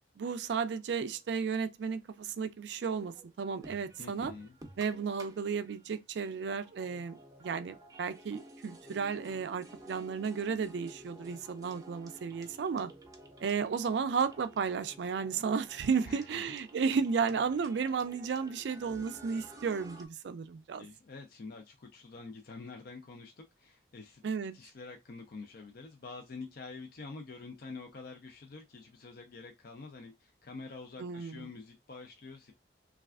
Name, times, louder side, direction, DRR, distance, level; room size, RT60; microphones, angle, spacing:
voice 1, 0.2-4.3 4.8-12.9 13.4-20.9 24.2-24.6 31.0-31.5, right 6 dB, 65° right, 0.3 m, -33 dB
sound 1, 0.9-2.3 2.8-20.1, right 1 dB, 20° right, 0.6 m, -53 dB
voice 2, 4.0-4.5 16.1-16.2 20.8-24.2 24.5-32.5, left 4 dB, 55° left, 0.5 m, -47 dB
3.2 x 2.3 x 2.3 m
head